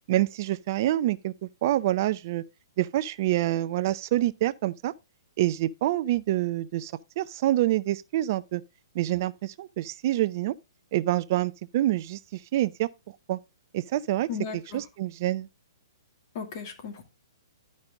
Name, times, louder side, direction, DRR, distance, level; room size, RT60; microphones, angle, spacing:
voice 1, 0.1-2.4 2.8-4.9 5.4-8.6 9.0-10.5 10.9-12.9 13.3-13.4 13.7-14.3 14.7-15.5, right 14 dB, 45° right, 0.4 m, -26 dB
voice 2, 14.3-14.8 16.3-17.0, left 6 dB, 45° left, 2.3 m, -36 dB
11.5 x 5.3 x 3.6 m
figure-of-eight pair, 120°, 2 cm